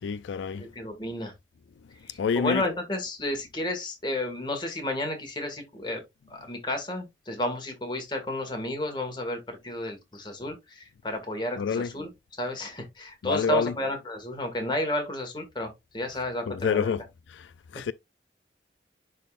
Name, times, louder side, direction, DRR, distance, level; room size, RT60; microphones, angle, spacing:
voice 1, 0.0-0.7 2.2-2.6 11.6-11.9 13.2-13.7 16.5-17.0 17.3-17.9, left 6 dB, 90° left, 0.4 m, -28 dB
voice 2, 0.6-1.3 2.0-6.0 6.3-16.9, left 1 dB, 25° left, 1.8 m, -32 dB
11.0 x 3.8 x 2.5 m
head